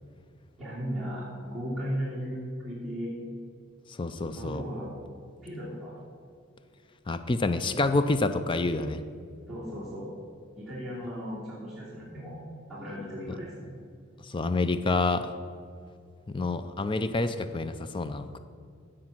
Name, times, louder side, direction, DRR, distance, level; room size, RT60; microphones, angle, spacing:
voice 1, 0.6-3.1 4.3-5.0 5.4-6.0 9.5-10.1 10.5-12.4 12.7-13.7, equal, ahead, -12 dB, 2.9 m, -36 dB
voice 2, 3.9-4.6 7.1-9.0 14.2-15.3 16.3-18.4, left 2 dB, 25° left, 11 dB, 0.4 m, -28 dB
15.0 x 5.2 x 5.9 m, 2.3 s
head